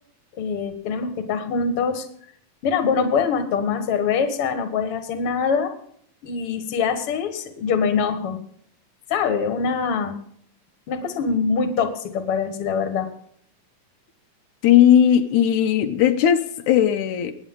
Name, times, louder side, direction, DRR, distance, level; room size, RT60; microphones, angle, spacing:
voice 1, 0.4-2.1 2.6-5.7 6.2-8.4 9.1-10.1 10.9-13.1, left 5 dB, 55° left, 2.2 m, -24 dB
voice 2, 14.6-17.3, left 10 dB, 90° left, 2.3 m, -17 dB
19.5 x 9.3 x 3.8 m
omnidirectional pair, 3.3 m